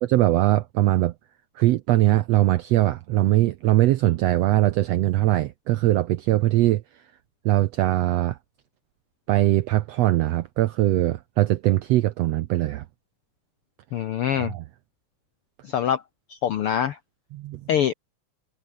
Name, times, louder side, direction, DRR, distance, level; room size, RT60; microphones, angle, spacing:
voice 1, 0.0-1.1 1.6-6.8 7.4-8.4 9.3-12.8 14.4-14.6 17.3-17.7, right 15 dB, 85° right, 1.5 m, -21 dB
voice 2, 13.9-14.5 15.6-16.0 16.3-17.0 17.7-17.9, left 9 dB, 75° left, 1.3 m, -24 dB
omnidirectional pair, 3.7 m